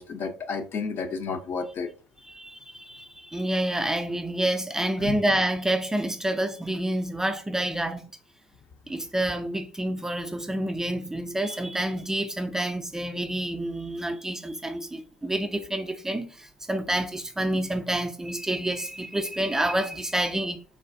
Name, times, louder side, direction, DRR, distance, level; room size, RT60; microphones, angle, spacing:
voice 1, 0.0-1.9 5.0-5.2, left 5 dB, 45° left, 0.5 m, -31 dB
voice 2, 2.3-8.0 8.9-20.6, right 1 dB, 10° right, 0.3 m, -28 dB
3.2 x 2.2 x 2.5 m
figure-of-eight pair, 60°, 5 cm